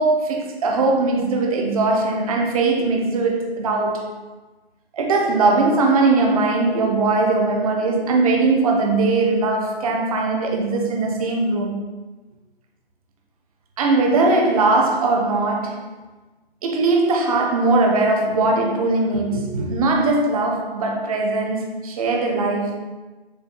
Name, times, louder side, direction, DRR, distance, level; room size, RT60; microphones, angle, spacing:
voice 1, 0.0-4.1 4.9-11.8 13.8-15.8 16.6-22.8, right 3 dB, 35° right, 1 dB, 0.5 m, -20 dB
6.6 x 2.4 x 2.2 m, 1.2 s
figure-of-eight pair, 135°, 31 cm